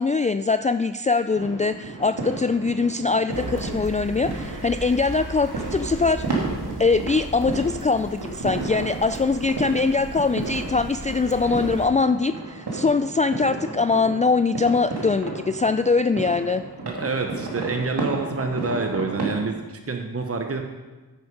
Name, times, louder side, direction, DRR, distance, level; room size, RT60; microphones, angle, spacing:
voice 1, 0.0-6.5 6.8-16.6, left 4 dB, 20° left, 10 dB, 0.3 m, -22 dB
sound 1, 1.3-19.4, right 3 dB, 80° right, 2.6 m, -33 dB
sound 2, 3.3-11.9, right 1 dB, 50° right, 2.3 m, -37 dB
voice 2, 16.8-20.6, right 3 dB, 35° right, 4 dB, 1.0 m, -27 dB
9.5 x 9.3 x 5.2 m, 1.2 s
cardioid pair, 45°, 39 cm